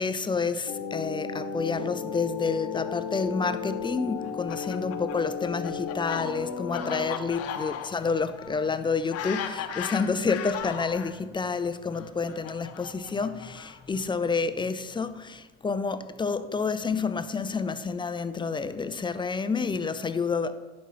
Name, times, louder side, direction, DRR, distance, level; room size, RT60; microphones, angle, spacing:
voice 1, 0.0-20.5, left 4 dB, 15° left, 0.5 m, -29 dB
sound 1, 0.7-7.1, left 6 dB, 70° left, 1.0 m, -34 dB
Fowl, 4.2-11.1 11.9-14.0, left 8 dB, 45° left, 0.9 m, -37 dB
10.5 x 5.5 x 4.2 m
hypercardioid pair, 70°, 33 cm